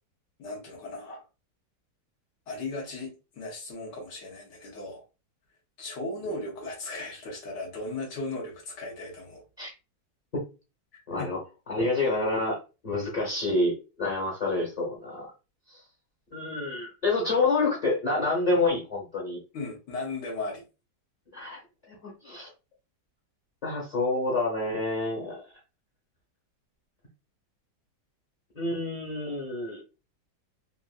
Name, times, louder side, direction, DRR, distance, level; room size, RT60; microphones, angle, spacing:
voice 1, 0.4-1.2 2.5-5.0 5.8-9.4 10.9-11.3 19.5-20.6, left 2 dB, 75° left, 1.6 m, -37 dB
voice 2, 11.1-11.4 11.7-15.3 15.7-15.8 16.3-19.4 21.3-21.6 21.9-22.5 23.6-25.4 28.5-29.8, left 2 dB, 30° left, 0.8 m, -28 dB
3.6 x 2.5 x 2.4 m
omnidirectional pair, 1.9 m